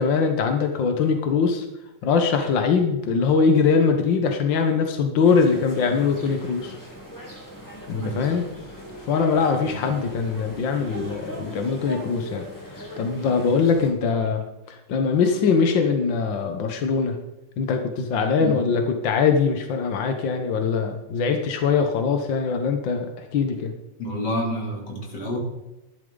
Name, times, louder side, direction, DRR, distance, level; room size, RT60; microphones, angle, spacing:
voice 1, 0.0-1.6 2.0-6.8 7.9-8.4 9.1-12.4 12.7-17.2 17.6-23.7, left 5 dB, 65° left, 5 dB, 1.2 m, -22 dB
sound 1, 5.2-13.9, equal, 5° left, 2.5 m, -39 dB
voice 2, 24.0-25.4, equal, 35° left, -1 dB, 3.6 m, -29 dB
13.5 x 11.5 x 3.9 m, 0.98 s
omnidirectional pair, 3.4 m